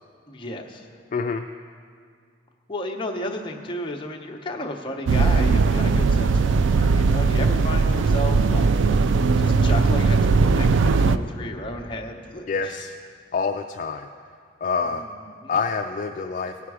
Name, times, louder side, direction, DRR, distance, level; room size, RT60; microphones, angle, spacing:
voice 1, 0.3-0.9 2.7-12.8 14.8-15.5, left 1 dB, 25° left, 2 dB, 0.8 m, -33 dB
voice 2, 1.1-1.5 12.5-12.9 13.3-14.1 14.6-15.1 15.5-16.7, left 5 dB, 40° left, 4 dB, 0.3 m, -26 dB
sound 1, 5.1-11.2, right 4 dB, 80° right, 0.3 m, -19 dB
17.5 x 5.8 x 4.8 m, 2.1 s
head